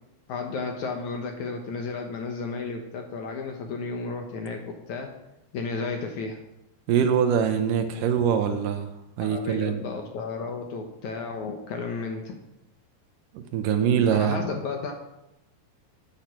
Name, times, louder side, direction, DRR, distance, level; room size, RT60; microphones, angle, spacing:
voice 1, 0.3-5.1 5.5-6.4 9.2-12.3 14.1-14.9, left 4 dB, 75° left, 3 dB, 1.7 m, -33 dB
voice 2, 6.9-8.9 9.2-9.8 13.3-14.4, right 8 dB, 70° right, 6 dB, 2.1 m, -23 dB
14.0 x 8.1 x 5.9 m, 0.90 s
omnidirectional pair, 5.1 m